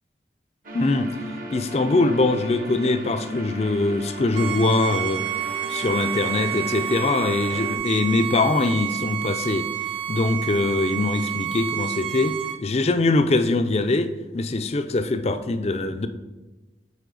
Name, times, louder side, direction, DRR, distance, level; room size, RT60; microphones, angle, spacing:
sound 1, 0.6-7.8, right 1 dB, 50° right, 1.0 m, -36 dB
voice 1, 0.7-1.1 1.5-5.3 5.7-9.7 10.1-16.1, left 2 dB, 35° left, 0.5 m, -22 dB
Bowed string instrument, 4.3-12.6, right 11 dB, 30° right, 0.6 m, -29 dB
8.2 x 4.9 x 3.9 m
head